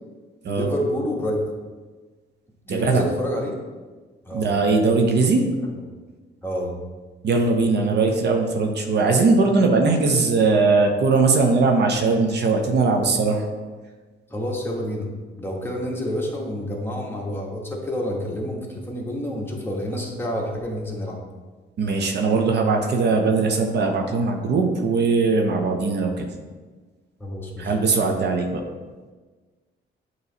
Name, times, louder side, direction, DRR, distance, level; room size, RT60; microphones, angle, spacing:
voice 1, 0.5-1.4 2.7-3.6 4.2-4.5 6.4-6.7 14.3-15.1 15.4-21.2 27.2-27.7, equal, 10° left, -2 dB, 1.4 m, -28 dB
voice 2, 2.7-3.1 4.3-5.5 7.2-13.4 21.8-26.3 27.6-28.6, right 3 dB, 60° right, 3 dB, 0.8 m, -20 dB
8.1 x 3.1 x 4.0 m, 1.4 s
cardioid pair, 90°, 20 cm